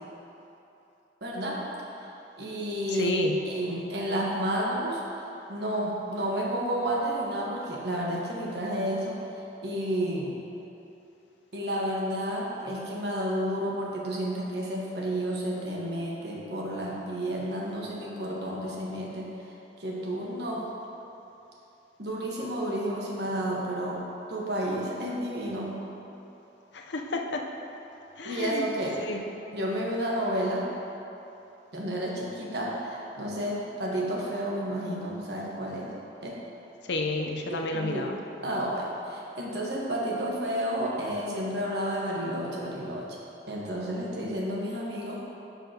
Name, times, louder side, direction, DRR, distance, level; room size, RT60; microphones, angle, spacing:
voice 1, 1.2-1.6 2.0-2.1 2.4-5.0 5.5-10.4 11.5-19.5 19.8-20.6 22.0-24.0 24.3-25.7 28.2-29.0 29.5-30.7 31.7-35.9 36.2-36.4 37.5-38.1 38.4-43.1 43.5-45.2, equal, 70° right, -3 dB, 1.2 m, -31 dB
voice 2, 3.0-3.4 26.7-27.4 28.2-28.7 29.0-29.2 36.9-38.2, left 2 dB, 85° left, 2 dB, 0.7 m, -30 dB
11.0 x 5.5 x 2.9 m, 3.0 s
head